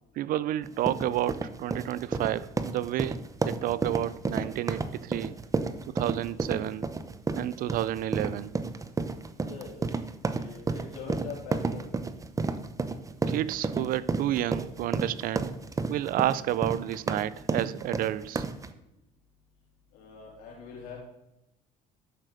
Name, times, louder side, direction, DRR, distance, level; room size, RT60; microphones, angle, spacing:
voice 1, 0.2-3.2 3.4-5.3 5.9-6.9 7.3-8.5 13.3-15.5 15.9-18.4, right 13 dB, 65° right, 0.5 m, -30 dB
sound 1, 0.6-18.7, right 3 dB, 20° right, 0.8 m, -31 dB
voice 2, 9.4-9.7 10.3-11.9 19.9-21.0, left 6 dB, 90° left, 3.7 m, -42 dB
11.5 x 6.7 x 4.9 m
cardioid pair, 100°, 16 cm